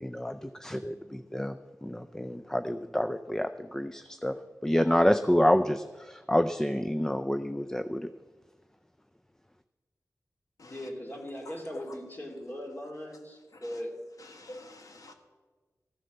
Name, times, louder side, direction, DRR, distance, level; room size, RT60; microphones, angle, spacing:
voice 1, 0.0-4.4 4.6-8.1, equal, 10° left, 10 dB, 0.4 m, -28 dB
voice 2, 10.6-13.9, equal, 30° left, 0 dB, 2.5 m, -39 dB
voice 3, 11.5-11.8 13.5-13.8 14.2-15.1, left 1 dB, 65° left, 5 dB, 1.5 m, -47 dB
14.0 x 7.6 x 6.6 m, 1.4 s
wide cardioid pair, 80°, 6 cm